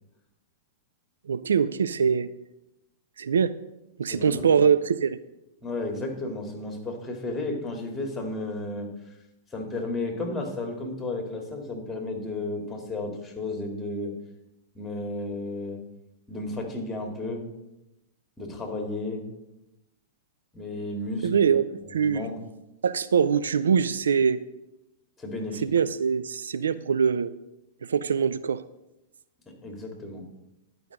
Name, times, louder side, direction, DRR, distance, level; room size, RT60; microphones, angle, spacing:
voice 1, 1.3-2.3 3.2-3.5 4.0-5.2 21.2-21.6 21.9-22.3 22.8-24.4 25.6-27.3 27.8-28.6, right 7 dB, 75° right, 14 dB, 0.4 m, -23 dB
voice 2, 4.1-4.6 5.6-8.9 9.5-14.1 14.7-15.8 16.3-17.4 18.4-19.2 20.5-21.6 21.8-22.4 25.2-25.6 29.5-30.3, left 2 dB, 10° left, 3 dB, 2.3 m, -33 dB
11.0 x 5.2 x 6.0 m, 0.91 s
figure-of-eight pair, 100°, 0 cm